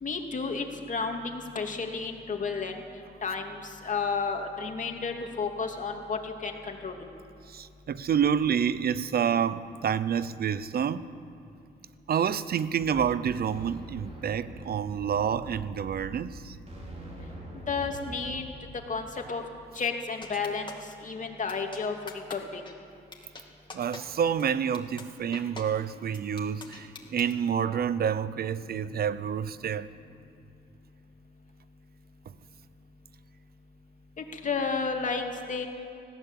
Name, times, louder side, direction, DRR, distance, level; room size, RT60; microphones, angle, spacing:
voice 1, 0.0-2.8 3.2-6.9 17.7-18.4 18.9-19.5 19.7-22.6 34.2-35.7, left 4 dB, 40° left, 2.7 m, -32 dB
voice 2, 7.5-11.0 12.1-16.6 23.7-29.9, right 8 dB, 50° right, 0.8 m, -28 dB
sound 1, 12.8-18.4, right 1 dB, 35° right, 5.0 m, -44 dB
sound 2, 20.2-20.9 21.5-21.8 22.1-22.4 22.7-22.8 23.1-23.4 23.7-24.0 24.4-24.5 24.7-25.0 25.3-25.6 26.1-27.3, left 4 dB, 25° left, 2.9 m, -42 dB
20.0 x 16.0 x 8.3 m
cardioid pair, 90°, 20 cm